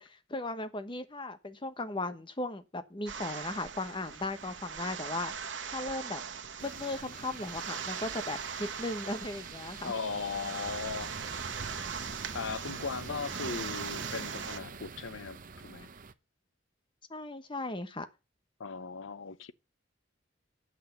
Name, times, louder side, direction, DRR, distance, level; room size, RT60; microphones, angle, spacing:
voice 1, 0.0-5.3 5.7-6.2 6.6-9.9 17.1-18.1, left 2 dB, 25° left, 1.1 m, -37 dB
sound 1, 3.1-14.6, right 6 dB, 70° right, 1.3 m, -40 dB
sound 2, 6.6-16.1, right 4 dB, 45° right, 0.7 m, -45 dB
voice 2, 9.8-11.1 12.3-15.9 18.6-19.5, left 5 dB, 80° left, 0.7 m, -38 dB
9.3 x 6.1 x 7.9 m
head